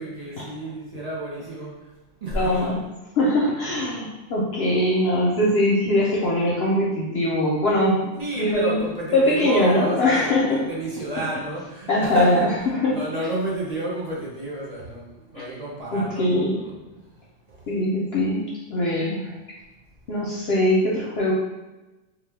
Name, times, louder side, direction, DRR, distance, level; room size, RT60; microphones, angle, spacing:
voice 1, 0.0-1.7 2.2-2.7 8.2-16.7, right 1 dB, 45° right, -5 dB, 0.5 m, -30 dB
voice 2, 2.3-2.8 3.2-8.1 8.4-8.8 9.1-10.5 11.9-13.0 15.9-16.6 17.7-18.4 18.7-19.3 20.1-21.3, left 1 dB, 60° left, -5 dB, 0.7 m, -21 dB
3.0 x 2.3 x 3.3 m, 1.0 s
omnidirectional pair, 1.4 m